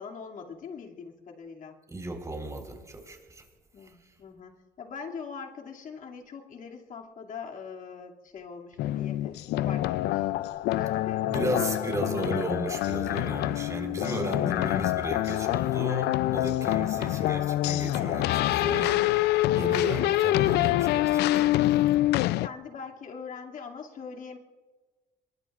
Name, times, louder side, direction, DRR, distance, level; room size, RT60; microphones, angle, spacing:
voice 1, 0.0-1.7 3.7-10.3 10.7-12.3 22.2-24.4, left 5 dB, 50° left, 0 dB, 2.5 m, -42 dB
voice 2, 1.9-3.4 11.2-19.0 19.5-21.5, right 2 dB, 20° right, 3 dB, 4.0 m, -35 dB
sound 1, 8.8-22.5, left 15 dB, 75° left, 0.4 m, -26 dB
26.5 x 22.5 x 2.5 m, 1.3 s
cardioid pair, 110°, 17 cm